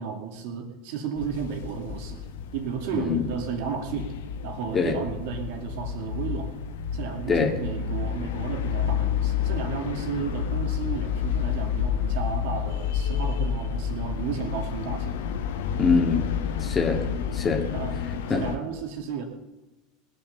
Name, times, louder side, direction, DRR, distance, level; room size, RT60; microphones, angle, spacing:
voice 1, 0.0-2.2 2.5-4.1 4.4-6.5 6.9-15.2 17.7-17.9 18.3-19.3, right 7 dB, 60° right, 5 dB, 2.6 m, -33 dB
sound 1, 1.2-18.6, left 8 dB, 70° left, 1.3 m, -30 dB
voice 2, 2.9-3.3 4.7-5.0 7.3-7.5 15.8-16.3 16.6-17.1 17.3-17.7 18.3-18.4, left 5 dB, 25° left, 3 dB, 2.1 m, -23 dB
20.0 x 7.3 x 6.9 m, 1.0 s
hypercardioid pair, 80°, 0 cm